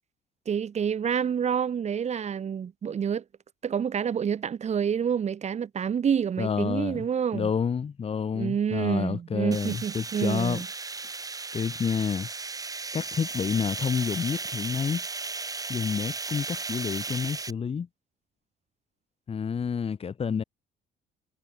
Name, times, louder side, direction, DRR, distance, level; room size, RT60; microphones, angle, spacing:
voice 1, 0.5-3.2 3.6-7.5 8.3-10.7, right 7 dB, 40° right, 3.1 m, -28 dB
voice 2, 6.4-7.1 7.3-10.6 11.5-12.3 12.9-15.0 15.7-17.9 19.3-20.4, left 6 dB, 35° left, 2.7 m, -29 dB
sound 1, 9.5-17.5, right 4 dB, 20° right, 2.6 m, -35 dB
cardioid pair, 110°, 17 cm